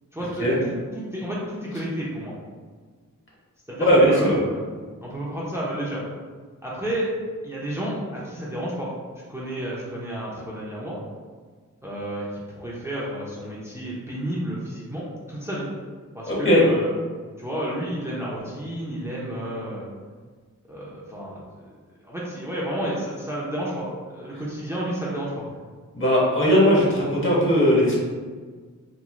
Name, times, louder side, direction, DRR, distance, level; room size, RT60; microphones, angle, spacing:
voice 1, 0.1-2.3 3.7-4.6 5.0-6.0 6.6-7.1 7.4-8.9 9.3-11.0 11.8-15.7 16.1-16.9 17.4-19.9 20.7-21.4 22.0-25.5, right 1 dB, 10° right, -6 dB, 0.6 m, -31 dB
voice 2, 3.8-4.4 16.3-16.6 25.9-27.9, equal, 35° left, -5 dB, 1.0 m, -18 dB
3.0 x 2.6 x 2.5 m, 1.5 s
cardioid pair, 65°, 34 cm